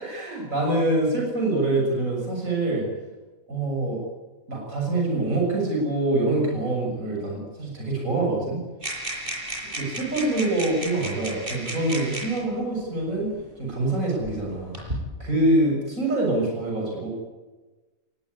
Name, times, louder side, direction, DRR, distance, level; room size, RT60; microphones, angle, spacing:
voice 1, 0.0-2.9 3.5-4.0 4.5-8.6 9.8-13.3 13.6-14.7 15.2-17.1, right 2 dB, 70° right, -1 dB, 7.3 m, -25 dB
sound 1, 8.8-12.4 13.4-13.5 14.2-15.0, right 1 dB, 40° right, 7.7 m, -33 dB
29.5 x 19.5 x 9.8 m, 1.2 s
omnidirectional pair, 1.4 m